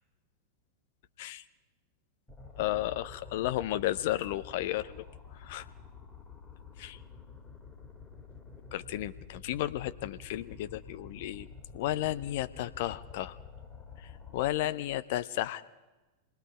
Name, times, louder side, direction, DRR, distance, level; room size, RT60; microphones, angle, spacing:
sound 1, 2.3-14.5, left 5 dB, 15° left, 2.2 m, -49 dB
voice 1, 2.6-4.8 5.5-5.7 6.8-7.0 8.7-11.5 11.7-13.4 14.0-15.6, left 14 dB, 50° left, 14 dB, 0.6 m, -33 dB
27.0 x 19.5 x 5.0 m, 1.1 s
figure-of-eight pair, 90°, 0 cm